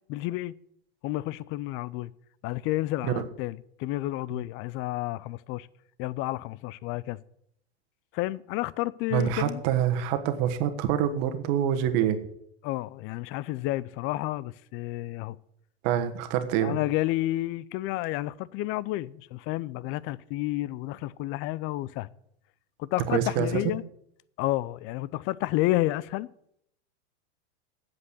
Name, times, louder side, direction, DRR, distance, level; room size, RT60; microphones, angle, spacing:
voice 1, 0.1-0.5 1.0-2.1 2.4-5.7 6.0-7.2 8.1-9.6 12.6-15.4 16.6-22.1 22.8-23.8 24.4-26.3, left 17 dB, 40° left, 0.5 m, -30 dB
voice 2, 9.1-12.2 15.8-16.8 23.1-23.6, right 10 dB, 50° right, 1.4 m, -26 dB
8.5 x 7.9 x 7.9 m
hypercardioid pair, 115°, 33 cm